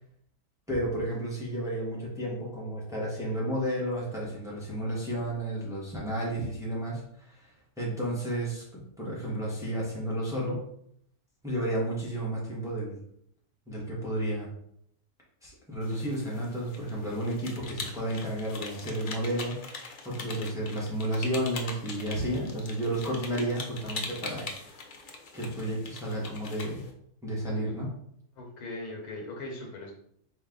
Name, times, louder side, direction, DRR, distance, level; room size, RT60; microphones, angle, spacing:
voice 1, 0.7-7.5 7.8-10.6 11.4-13.0 13.7-14.5 15.4-24.7 25.3-26.8 27.2-27.9, right 1 dB, ahead, -5 dB, 1.2 m, -32 dB
sound 1, 15.8-26.9, left 4 dB, 55° left, 0.6 m, -42 dB
voice 2, 28.4-29.9, left 2 dB, 85° left, 1 dB, 1.6 m, -39 dB
4.3 x 3.2 x 3.8 m, 0.70 s
omnidirectional pair, 1.6 m